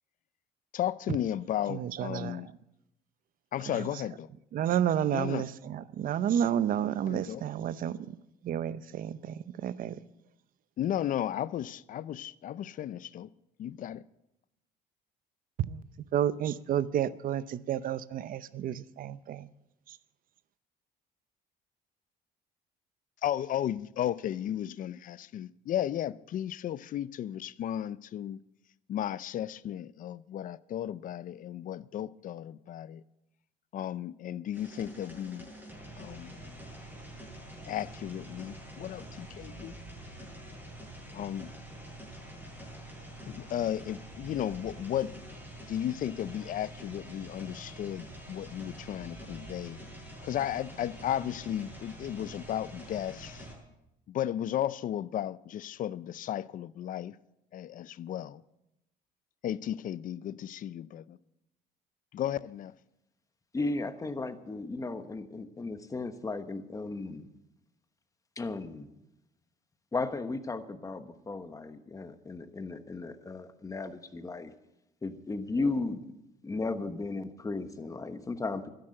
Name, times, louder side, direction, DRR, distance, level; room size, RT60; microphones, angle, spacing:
voice 1, 0.7-2.5 3.5-4.3 5.1-5.4 7.1-7.4 10.8-13.3 13.6-14.0 23.2-28.4 28.9-33.0 33.7-35.5 36.0-36.5 37.7-39.7 41.1-41.5 43.3-45.1 45.7-49.8 50.2-53.5 54.1-57.2 57.5-58.4 59.4-61.2 62.1-62.7, left 11 dB, 50° left, 0.5 m, -34 dB
voice 2, 1.7-2.6 3.6-4.1 4.5-8.2 8.4-10.0 15.6-19.5 19.9-20.0, right 10 dB, 55° right, 0.6 m, -31 dB
sound 1, 34.5-53.5, right 1 dB, 10° right, 7.7 m, -46 dB
voice 3, 63.5-67.3 68.4-68.9 69.9-74.5 75.0-76.0 76.4-78.7, left 3 dB, 20° left, 1.2 m, -35 dB
12.5 x 11.0 x 7.8 m
cardioid pair, 110°, 17 cm